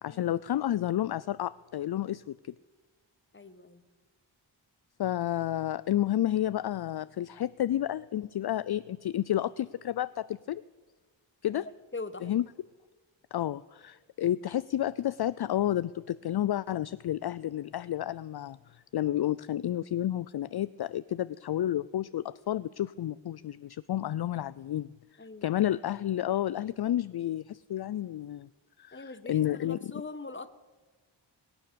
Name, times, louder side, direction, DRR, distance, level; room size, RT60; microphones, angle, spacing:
voice 1, 0.0-2.5 5.0-10.6 11.4-11.6 12.2-12.4 13.3-28.5 28.8-29.9, left 12 dB, 55° left, 17 dB, 0.5 m, -31 dB
voice 2, 3.3-3.8 11.5-11.6 11.9-12.4 25.2-25.5 28.9-30.5, left 3 dB, 25° left, 12 dB, 1.3 m, -42 dB
21.5 x 9.5 x 6.9 m, 1.3 s
cardioid pair, 40°, 47 cm